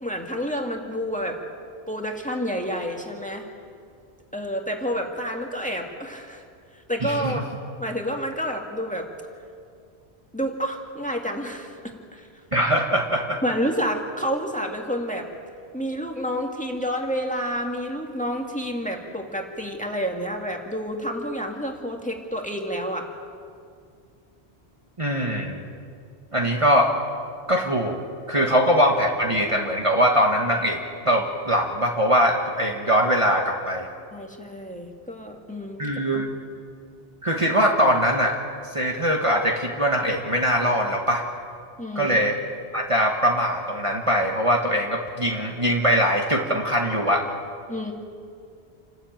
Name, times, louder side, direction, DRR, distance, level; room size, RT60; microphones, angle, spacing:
voice 1, 0.0-1.4 1.9-3.4 4.3-6.4 6.9-7.5 7.8-9.1 10.3-11.7 12.1-12.3 13.4-15.3 15.7-23.1 28.4-28.5 34.1-36.1 41.8-42.2 47.7-47.9, equal, 5° left, 2 dB, 2.1 m, -29 dB
voice 2, 7.0-7.4 12.5-13.4 25.0-25.6 26.3-26.9 27.5-28.0 28.3-33.9 35.8-36.3 37.2-38.4 38.7-41.2 41.9-42.4 42.7-47.2, equal, 30° right, 1 dB, 1.6 m, -22 dB
28.5 x 13.0 x 8.9 m, 2.3 s
omnidirectional pair, 1.1 m